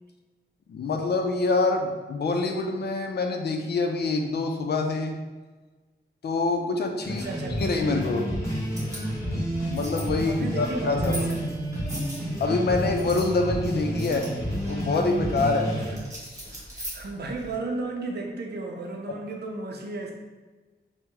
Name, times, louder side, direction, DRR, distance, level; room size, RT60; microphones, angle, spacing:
voice 1, 0.7-5.2 6.2-7.3 7.6-8.3 9.7-11.3 12.4-14.3 14.6-15.7, left 3 dB, 65° left, 3 dB, 0.4 m, -26 dB
sound 1, 7.0-15.9, equal, 15° left, 1.1 m, -30 dB
voice 2, 7.1-7.6 10.2-11.5 15.8-16.1 16.5-20.1, right 3 dB, 65° right, 1 dB, 0.5 m, -34 dB
sound 2, 8.6-17.6, right 1 dB, 15° right, 1.2 m, -42 dB
3.5 x 2.1 x 2.9 m, 1.3 s
wide cardioid pair, 80°, 18 cm